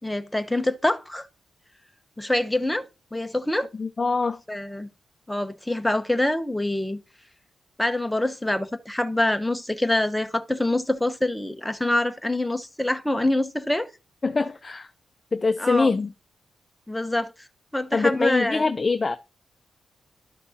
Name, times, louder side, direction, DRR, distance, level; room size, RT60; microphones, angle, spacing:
voice 1, 0.0-1.3 2.2-3.7 4.5-4.9 5.3-7.0 7.8-13.9 15.6-15.9 16.9-17.3 17.7-18.6, left 1 dB, 5° left, 0.8 m, -25 dB
voice 2, 3.8-4.4 14.2-14.9 15.3-16.1 17.9-19.2, left 4 dB, 30° left, 0.5 m, -23 dB
12.5 x 5.9 x 2.8 m
wide cardioid pair, 115°, 0 cm